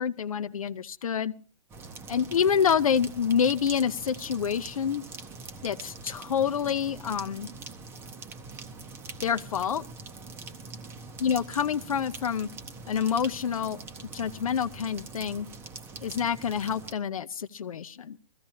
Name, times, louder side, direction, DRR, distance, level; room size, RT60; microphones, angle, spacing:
voice 1, 0.0-1.3 2.1-5.0 5.6-7.5 9.2-9.8 11.2-12.5 12.9-13.8 14.1-15.5 16.0-18.2, left 7 dB, 85° left, 11 dB, 0.7 m, -27 dB
sound 1, 1.7-16.9, right 4 dB, 15° right, 0.7 m, -43 dB
21.5 x 14.5 x 2.8 m, 0.38 s
hypercardioid pair, 150°, 17 cm